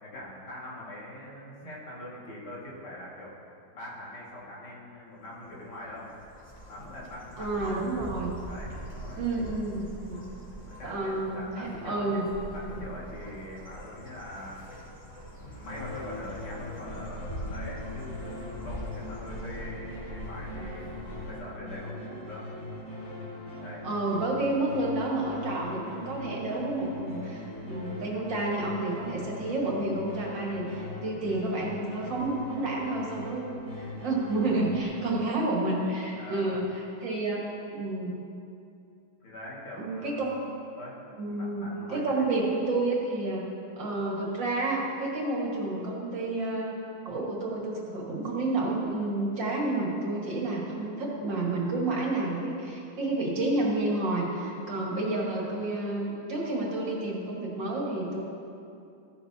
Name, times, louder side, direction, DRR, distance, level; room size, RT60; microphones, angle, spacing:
voice 1, 0.0-3.3 3.7-6.1 6.7-7.8 8.4-9.2 10.7-12.2 12.5-14.7 15.4-20.9 21.2-22.4 23.6-23.8 34.9-35.1 36.1-36.6 39.2-40.3 40.8-42.3, left 1 dB, 80° left, -6 dB, 3.1 m, -43 dB
sound 1, 5.2-21.4, right 1 dB, 5° left, 2.9 m, -43 dB
voice 2, 7.4-8.3 9.2-10.2 10.8-12.3 12.6-12.7 23.8-36.7 37.0-37.4 37.7-38.1 39.8-40.4 41.2-43.5 43.8-46.8 47.1-58.2, right 2 dB, 60° right, -3 dB, 2.4 m, -30 dB
sound 2, 15.7-34.8, left 2 dB, 35° left, 2.6 m, -40 dB
15.5 x 11.0 x 2.9 m, 2.6 s
omnidirectional pair, 2.4 m